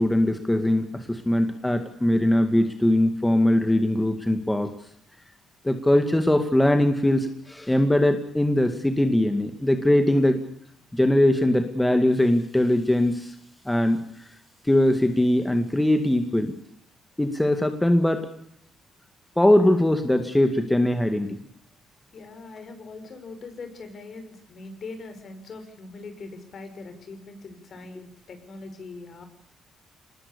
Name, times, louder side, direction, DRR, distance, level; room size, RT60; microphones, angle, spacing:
voice 1, 0.0-4.7 5.6-10.4 10.9-13.4 13.7-14.0 14.6-16.5 17.2-18.3 19.4-21.4, left 1 dB, 10° left, 7 dB, 2.2 m, -21 dB
voice 2, 22.1-29.2, left 3 dB, 55° left, 8 dB, 5.9 m, -41 dB
25.0 x 20.0 x 6.9 m, 0.68 s
cardioid pair, 90°, 0 cm